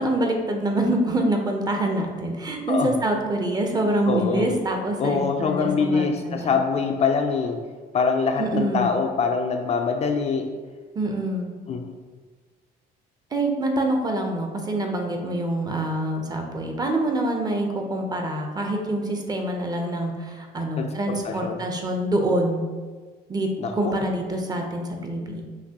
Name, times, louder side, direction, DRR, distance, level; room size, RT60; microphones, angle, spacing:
voice 1, 0.0-6.6 8.4-8.9 11.0-11.5 13.3-22.7 23.3-23.5 23.8-25.4, right 1 dB, 25° right, 2 dB, 0.6 m, -25 dB
voice 2, 4.1-4.5 5.0-7.6 7.9-10.5 11.7-11.9 20.8-21.6 23.6-24.0, left 5 dB, 40° left, 4 dB, 0.4 m, -24 dB
5.8 x 2.6 x 2.8 m, 1.4 s
cardioid pair, 110°, 17 cm